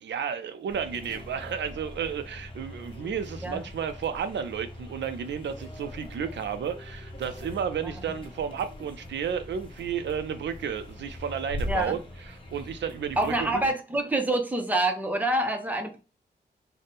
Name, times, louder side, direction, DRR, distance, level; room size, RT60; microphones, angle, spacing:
voice 1, 0.0-13.7, right 7 dB, 80° right, 0.4 m, -32 dB
sound 1, 0.7-13.7, left 1 dB, 30° left, 0.8 m, -44 dB
sound 2, 6.4-6.5 7.3-7.4 8.1-8.2 9.7-10.2 10.5-10.9 11.2-12.5 12.8-12.9 13.1-13.3, equal, 70° left, 0.9 m, -36 dB
voice 2, 13.2-16.0, right 1 dB, 10° right, 0.6 m, -27 dB
3.5 x 2.1 x 4.0 m
wide cardioid pair, 155°, 19 cm